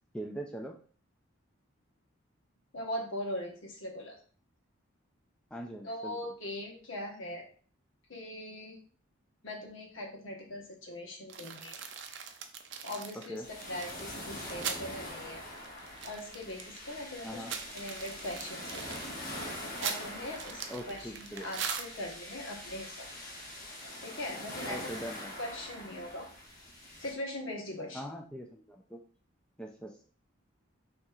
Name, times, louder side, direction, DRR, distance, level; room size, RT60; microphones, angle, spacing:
voice 1, 0.1-0.8 5.5-6.2 13.3-13.5 17.2-17.5 20.7-21.5 24.7-25.3 27.9-29.0 29.6-30.0, right 1 dB, 5° left, 1 dB, 0.3 m, -41 dB
voice 2, 2.7-4.2 5.8-7.5 8.1-8.8 9.4-11.8 12.8-13.4 13.7-15.4 16.0-17.4 17.7-19.0 19.8-23.1 24.0-24.8 25.4-26.3 27.0-28.0, left 1 dB, 70° left, 1 dB, 1.1 m, -40 dB
sound 1, 11.3-14.9 15.2-15.3 15.6-16.8 17.2-22.3, right 7 dB, 60° right, 0.5 m, -40 dB
sound 2, 13.4-27.1, left 1 dB, 40° left, 1.3 m, -44 dB
5.8 x 2.8 x 2.4 m, 0.42 s
head